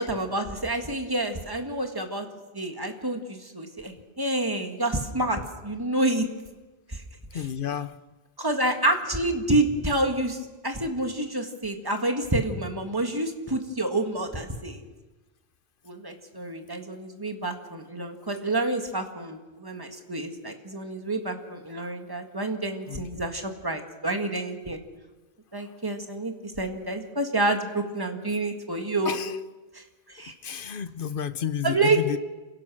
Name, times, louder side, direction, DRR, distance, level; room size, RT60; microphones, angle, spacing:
voice 1, 0.0-2.3 2.5-6.3 6.9-7.0 7.3-7.5 8.4-14.8 15.9-24.8 25.5-29.2 29.7-29.8 30.1-30.3 31.6-32.2, right 2 dB, 20° right, 5 dB, 2.0 m, -28 dB
voice 2, 7.3-8.0 22.9-23.0 29.1-29.3 30.4-32.2, left 8 dB, 60° left, 14 dB, 1.0 m, -31 dB
27.5 x 17.0 x 6.4 m, 1.2 s
omnidirectional pair, 1.1 m